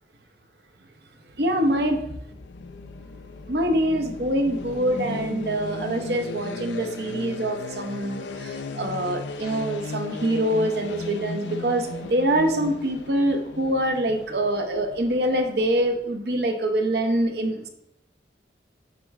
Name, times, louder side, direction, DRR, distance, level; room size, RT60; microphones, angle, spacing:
voice 1, 1.4-2.1 3.5-17.7, right 1 dB, 65° right, 5 dB, 0.8 m, -25 dB
sound 1, 2.2-16.1, left 3 dB, 80° left, 0.5 m, -36 dB
9.3 x 3.2 x 3.6 m, 0.82 s
head